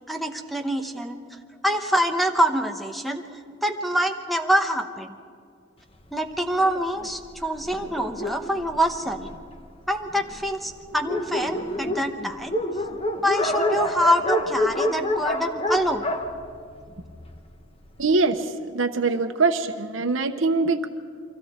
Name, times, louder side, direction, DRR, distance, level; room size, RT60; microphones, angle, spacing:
voice 1, 0.1-1.2 1.6-5.1 6.1-9.3 9.9-12.5 13.2-16.0, equal, ahead, 5 dB, 1.0 m, -25 dB
Dog, 6.6-9.6 10.3-10.4 10.7-10.8 11.0-17.4, left 1 dB, 30° left, 1.3 m, -28 dB
voice 2, 18.0-20.9, right 3 dB, 80° right, 7 dB, 1.0 m, -23 dB
29.5 x 24.0 x 4.4 m, 2.2 s
head